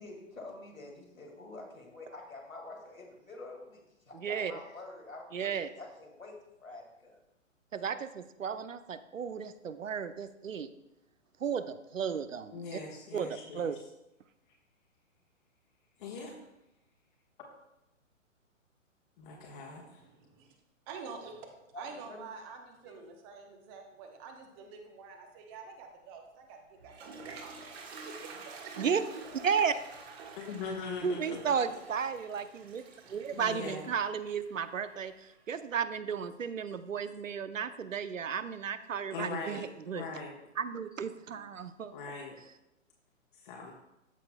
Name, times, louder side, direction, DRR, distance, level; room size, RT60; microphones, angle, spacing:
voice 1, 0.0-7.2 21.7-22.3 22.8-23.0, left 2 dB, 85° left, 1 dB, 2.1 m, -47 dB
voice 2, 4.2-4.5 5.3-5.7 7.7-10.7 11.4-12.8 13.1-13.3 13.5-13.8 28.8-29.0 29.3-29.7 31.0-32.8 33.1-40.0 40.6-41.9, right 7 dB, 75° right, 12 dB, 0.7 m, -34 dB
voice 3, 12.5-13.7 16.0-16.4 19.2-20.0 30.3-31.7 33.3-33.9 39.1-40.4 41.9-42.4 43.3-43.7, left 4 dB, 40° left, -2 dB, 1.3 m, -41 dB
voice 4, 20.0-20.5 20.9-27.5 28.0-28.9, right 5 dB, 20° right, 4 dB, 0.8 m, -48 dB
Toilet flush, 26.5-35.4, right 4 dB, 50° right, 1.6 m, -49 dB
13.5 x 5.6 x 2.2 m, 0.90 s
figure-of-eight pair, 125°, 39 cm